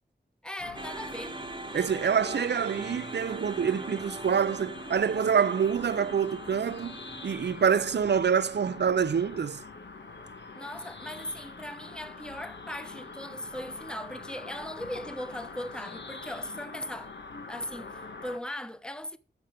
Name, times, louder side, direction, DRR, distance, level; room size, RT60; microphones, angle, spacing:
voice 1, 0.4-1.4 10.5-17.1 17.5-19.2, left 1 dB, 5° left, 1.0 m, -39 dB
sound 1, 0.6-18.4, left 3 dB, 85° left, 1.4 m, -44 dB
sound 2, 0.7-9.0, right 2 dB, 25° right, 0.9 m, -43 dB
voice 2, 1.7-9.6, right 7 dB, 75° right, 0.5 m, -26 dB
14.5 x 5.8 x 5.1 m
wide cardioid pair, 60°, 18 cm